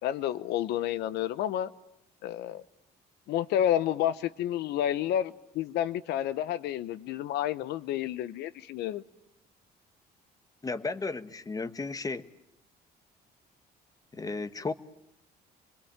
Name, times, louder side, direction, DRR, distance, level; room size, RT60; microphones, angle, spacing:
voice 1, 0.0-1.7 2.2-2.6 3.3-9.0, left 11 dB, 80° left, 15 dB, 1.0 m, -30 dB
voice 2, 10.6-12.3 14.1-14.7, left 3 dB, 20° left, 13 dB, 1.2 m, -34 dB
26.5 x 21.5 x 8.9 m, 0.81 s
cardioid pair, 110°, 17 cm